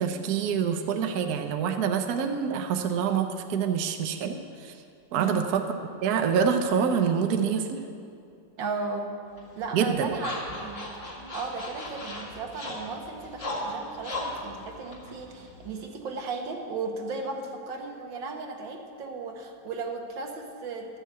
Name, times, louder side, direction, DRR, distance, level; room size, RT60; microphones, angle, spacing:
voice 1, 0.0-4.7 5.1-5.6 6.0-7.8 9.7-10.1, right 7 dB, 65° right, 5 dB, 1.2 m, -26 dB
voice 2, 5.1-5.5 8.6-9.1 9.6-10.9 11.3-21.0, right 4 dB, 85° right, 2 dB, 1.9 m, -35 dB
sound 1, 9.4-15.9, left 1 dB, 75° left, 2.9 m, -37 dB
13.0 x 6.5 x 8.0 m, 2.5 s
omnidirectional pair, 2.0 m